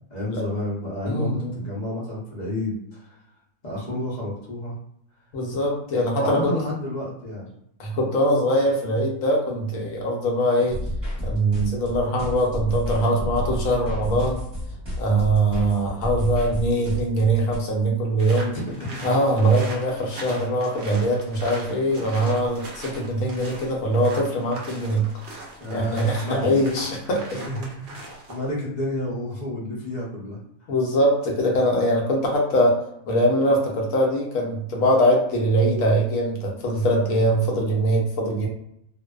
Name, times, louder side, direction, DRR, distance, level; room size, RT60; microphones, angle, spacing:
voice 1, 0.1-3.2 3.6-4.8 6.2-7.5 10.7-10.8 12.9-13.3 18.5-19.0 25.6-26.5 27.3-28.0 28.3-30.4, left 1 dB, 40° left, -5 dB, 0.6 m, -30 dB
voice 2, 1.1-1.5 5.3-6.5 7.8-10.8 11.2-14.4 15.0-18.5 19.0-25.0 25.7-27.4 30.7-32.8 33.1-38.5, right 1 dB, 70° left, -1 dB, 1.0 m, -22 dB
sound 1, 10.7-17.6, left 1 dB, 20° right, 0.9 m, -31 dB
sound 2, 18.2-28.5, right 2 dB, 60° right, 0.5 m, -40 dB
2.5 x 2.1 x 2.2 m, 0.74 s
omnidirectional pair, 1.5 m